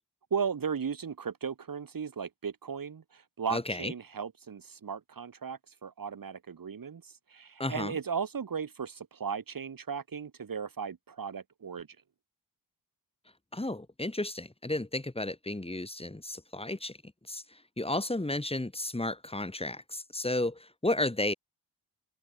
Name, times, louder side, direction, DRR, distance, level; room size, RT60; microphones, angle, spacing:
voice 1, 0.3-11.9, right 6 dB, 55° right, 2.6 m, -36 dB
voice 2, 3.5-3.9 7.6-8.0 13.5-17.0 17.3-21.3, left 2 dB, 15° left, 7.8 m, -33 dB
wide cardioid pair, 145°, 41 cm